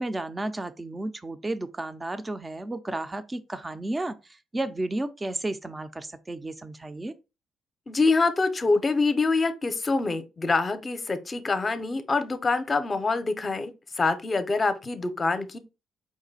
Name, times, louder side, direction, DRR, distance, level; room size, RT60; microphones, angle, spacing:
voice 1, 0.0-7.1, right 2 dB, 20° right, 0.5 m, -33 dB
voice 2, 7.9-13.7 14.0-15.6, left 3 dB, 30° left, 0.7 m, -25 dB
4.8 x 2.1 x 4.0 m
cardioid pair, 90°, 0 cm